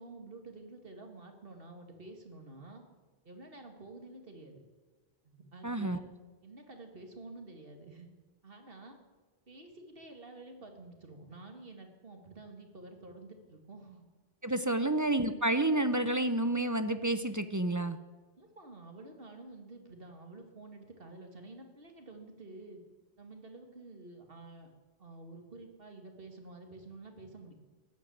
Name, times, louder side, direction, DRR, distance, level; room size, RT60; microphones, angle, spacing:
voice 1, 0.0-2.8 3.2-4.6 5.2-6.0 6.4-8.1 8.4-9.0 9.5-14.1 14.8-14.9 18.4-22.8 23.2-24.7 25.0-27.5, right 2 dB, 60° right, 4 dB, 2.3 m, -50 dB
voice 2, 5.6-6.0 14.4-18.0, right 1 dB, 20° right, 10 dB, 0.6 m, -29 dB
15.0 x 10.5 x 8.6 m, 1.3 s
omnidirectional pair, 1.1 m